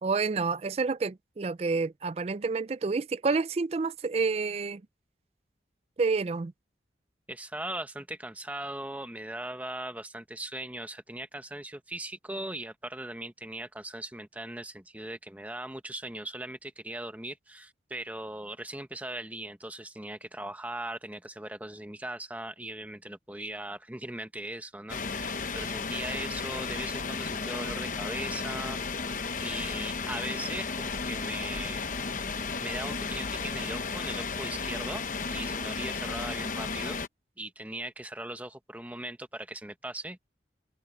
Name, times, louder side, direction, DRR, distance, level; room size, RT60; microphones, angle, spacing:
voice 1, 0.0-4.8 6.0-6.5, right 4 dB, 35° right, 0.4 m, -29 dB
voice 2, 7.3-28.8 29.4-31.9 32.6-37.0 37.4-40.3, right 1 dB, 10° right, 1.2 m, -39 dB
sound 1, 24.9-37.1, left 4 dB, 45° left, 0.9 m, -34 dB
head